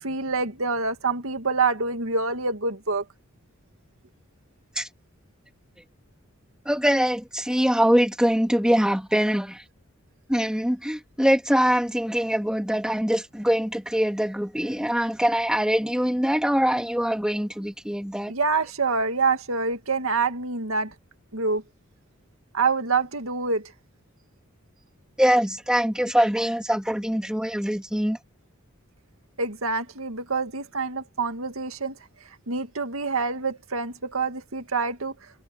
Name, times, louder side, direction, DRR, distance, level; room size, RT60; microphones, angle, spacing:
voice 1, 0.0-3.0 18.3-20.9 21.3-21.6 22.5-23.7 29.4-32.0 32.5-35.1, right 4 dB, 75° right, 2.1 m, -26 dB
voice 2, 6.7-9.6 10.3-18.3 25.2-28.2, equal, 5° right, 2.4 m, -23 dB
head